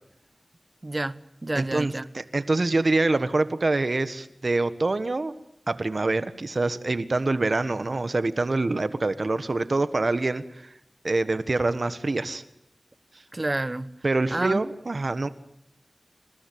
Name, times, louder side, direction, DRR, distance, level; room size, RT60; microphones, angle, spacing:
voice 1, 0.8-2.1 13.3-13.9 14.3-14.6, right 2 dB, 40° right, 1.4 m, -29 dB
voice 2, 1.5-5.3 5.7-10.7 11.0-12.4 14.0-15.3, right 2 dB, 60° right, 1.5 m, -25 dB
29.0 x 17.0 x 9.4 m
wide cardioid pair, 45°, 0 cm